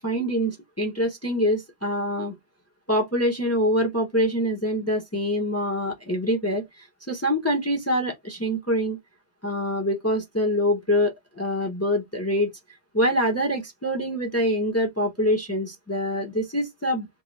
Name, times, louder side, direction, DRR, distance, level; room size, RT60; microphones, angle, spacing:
voice 1, 0.0-2.3 2.9-6.6 7.1-9.0 9.4-12.5 12.9-17.1, equal, 15° left, 0.6 m, -25 dB
2.4 x 2.3 x 3.1 m
omnidirectional pair, 1.2 m